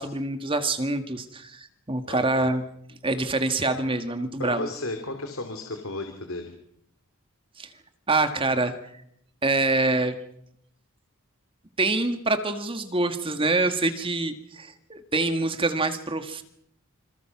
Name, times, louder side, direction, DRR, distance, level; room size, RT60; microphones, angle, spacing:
voice 1, 0.0-2.6 3.0-4.7 7.6-7.7 8.1-8.7 9.4-10.1 11.8-16.4, right 2 dB, 25° right, 8 dB, 1.7 m, -25 dB
voice 2, 2.1-2.5 4.4-6.5, left 2 dB, 75° left, 5 dB, 2.9 m, -34 dB
27.5 x 27.0 x 6.1 m, 0.74 s
head